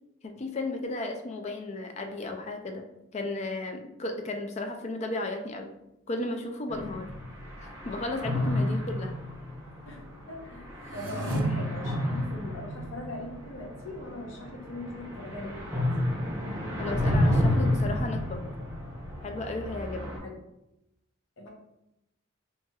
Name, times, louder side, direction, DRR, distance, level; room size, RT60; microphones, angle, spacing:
voice 1, 0.2-2.8 3.1-5.7 6.1-7.1 7.6-9.1 16.8-18.4 19.2-20.2, left 2 dB, 35° left, 5 dB, 0.3 m, -34 dB
sound 1, 6.7-20.2, left 1 dB, 15° right, 0.6 m, -30 dB
voice 2, 9.8-16.2 20.2-20.4 21.4-21.5, left 1 dB, 80° left, 0 dB, 0.7 m, -41 dB
sound 2, 10.8-11.4, right 1 dB, 65° right, 0.4 m, -36 dB
2.9 x 2.8 x 2.2 m, 0.87 s
head